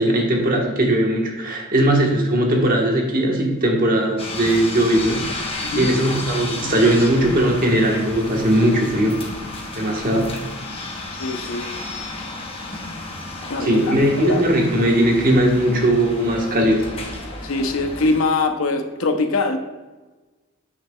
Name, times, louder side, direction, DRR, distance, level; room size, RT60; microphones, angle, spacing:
voice 1, 0.0-9.2 9.8-10.3 13.6-16.9, right 1 dB, 45° right, 0 dB, 1.3 m, -19 dB
sound 1, 4.2-18.2, left 2 dB, 25° left, 0.9 m, -32 dB
voice 2, 11.2-11.7 13.5-14.5 17.4-19.6, left 3 dB, 80° left, 7 dB, 0.7 m, -22 dB
9.3 x 5.8 x 2.3 m, 1.2 s
head